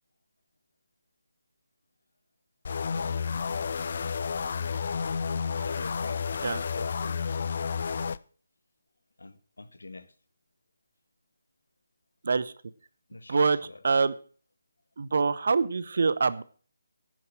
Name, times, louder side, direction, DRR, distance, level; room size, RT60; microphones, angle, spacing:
sound 1, 2.6-8.2, left 6 dB, 50° left, 0.5 m, -31 dB
voice 1, 2.7-3.9 5.4-6.2 6.7-7.2 9.2-10.1 13.1-13.8, left 2 dB, 70° left, 1.6 m, -45 dB
voice 2, 15.0-16.4, right 4 dB, 55° right, 0.9 m, -25 dB
11.0 x 9.3 x 5.9 m
figure-of-eight pair, 150°, 0 cm